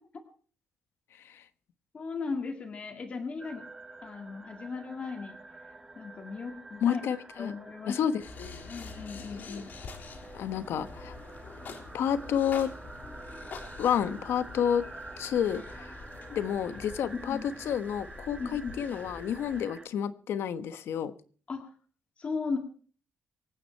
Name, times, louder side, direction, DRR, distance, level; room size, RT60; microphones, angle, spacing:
voice 1, 1.9-3.6 4.0-5.4 6.0-7.0 7.4-8.0 8.7-9.7 17.3-17.5 18.4-18.7 21.5-21.6 22.2-22.6, left 4 dB, 30° left, 4 dB, 1.9 m, -36 dB
sound 1, 3.4-19.9, right 2 dB, 15° right, 1.4 m, -48 dB
voice 2, 6.8-7.5 7.9-8.7 9.3-9.6 10.3-11.1 11.9-12.7 13.8-14.8 15.2-15.9 16.3-17.4 17.6-21.1, left 8 dB, 75° left, 12 dB, 1.2 m, -30 dB
sound 2, 8.2-19.7, left 4 dB, 50° left, 3.6 m, -46 dB
25.0 x 9.4 x 4.5 m, 0.42 s
wide cardioid pair, 180°, 4 cm